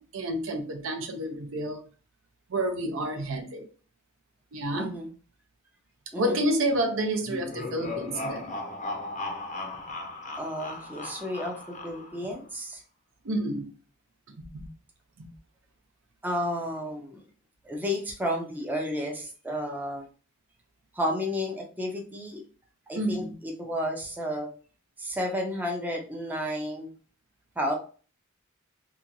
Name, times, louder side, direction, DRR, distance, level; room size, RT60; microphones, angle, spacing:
voice 1, 0.0-1.8 2.5-3.6 4.5-4.9 6.2-8.5 13.2-13.7 14.4-14.6 15.2-15.3 22.9-23.3, right 1 dB, 65° right, 5 dB, 0.6 m, -29 dB
voice 2, 4.7-5.1 6.1-6.4 10.4-11.6 11.8-12.8 16.2-17.2 17.6-20.0 20.9-22.4 22.9-24.5 25.0-26.9 27.6-27.7, equal, 10° right, 0 dB, 0.5 m, -32 dB
sound 1, 7.2-12.3, left 2 dB, 35° left, 0.5 m, -37 dB
2.8 x 2.3 x 2.6 m, 0.38 s
head